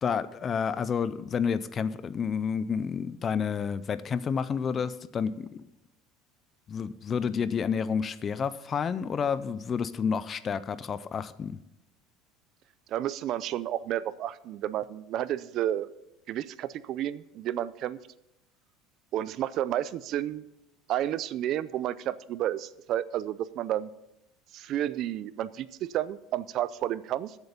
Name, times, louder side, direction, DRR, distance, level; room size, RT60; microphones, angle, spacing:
voice 1, 0.0-5.6 6.7-11.6, left 6 dB, 25° left, 16 dB, 0.4 m, -30 dB
voice 2, 12.9-15.9 16.3-18.0 19.1-20.4 20.9-23.9 24.5-27.4, right 12 dB, 40° right, 17 dB, 0.4 m, -31 dB
14.0 x 8.1 x 5.2 m, 0.88 s
cardioid pair, 165°, 0 cm